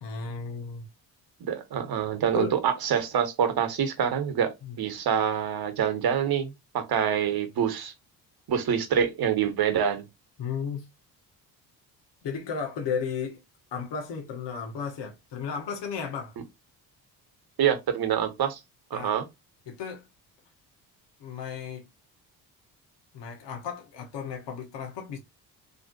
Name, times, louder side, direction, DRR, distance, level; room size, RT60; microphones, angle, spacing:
voice 1, 0.0-0.8 2.3-2.5 4.6-4.8 10.4-10.9 12.2-13.4 13.7-16.4 18.9-19.2 19.7-20.1 21.2-21.8 23.1-25.2, left 6 dB, 60° left, 1.5 m, -34 dB
voice 2, 1.4-7.9 8.5-10.0 17.6-18.6 18.9-19.2, right 8 dB, 50° right, 1.3 m, -26 dB
3.9 x 2.9 x 2.5 m
hypercardioid pair, 55°, 48 cm